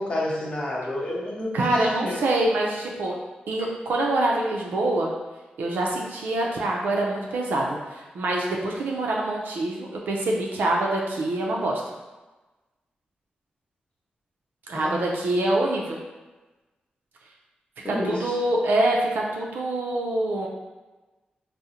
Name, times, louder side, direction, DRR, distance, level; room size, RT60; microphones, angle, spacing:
voice 1, 0.0-2.2 14.7-15.0 17.8-18.3, left 1 dB, 35° left, -5 dB, 0.7 m, -29 dB
voice 2, 1.5-3.1 3.5-5.1 5.6-11.8 14.7-16.0 17.9-20.5, right 1 dB, 80° right, -2 dB, 0.4 m, -25 dB
3.6 x 2.0 x 2.8 m, 1.2 s
cardioid pair, 85°, 3 cm